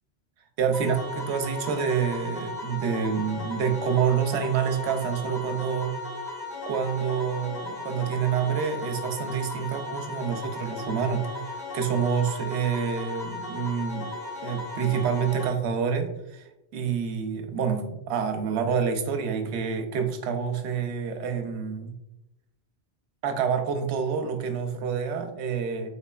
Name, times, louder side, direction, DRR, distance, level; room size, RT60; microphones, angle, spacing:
voice 1, 0.6-6.0 6.6-14.1 14.4-21.9 23.2-25.9, right 7 dB, 80° right, 6 dB, 0.8 m, -27 dB
sound 1, 0.7-15.5, left 2 dB, 85° left, 1.6 m, -36 dB
3.9 x 3.1 x 2.2 m, 0.91 s
omnidirectional pair, 1.1 m